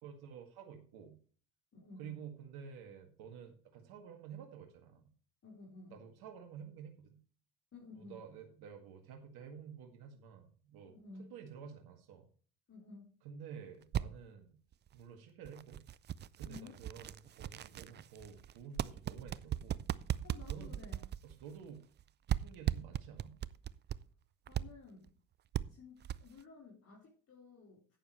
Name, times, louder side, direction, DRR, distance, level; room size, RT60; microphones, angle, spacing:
voice 1, 0.0-1.2 2.0-5.1 5.9-7.2 7.9-12.3 13.2-14.6 14.9-15.8 16.4-19.8 20.5-20.8 21.2-21.9 22.3-23.4, right 7 dB, 60° right, 4 dB, 1.9 m, -51 dB
voice 2, 1.7-2.2 5.4-6.0 7.7-8.3 10.9-11.3 12.7-13.1 16.4-16.8 20.2-21.1 24.5-25.1 25.7-28.0, left 4 dB, 35° left, -3 dB, 4.1 m, -54 dB
sound 1, 13.8-14.0 14.7-14.9 15.5-22.0 22.3-24.0 24.5-24.6 25.1-25.2 25.5-25.6 26.0-26.4, right 11 dB, 25° right, 0.4 m, -37 dB
11.0 x 9.6 x 3.1 m, 0.42 s
hypercardioid pair, 70°, 42 cm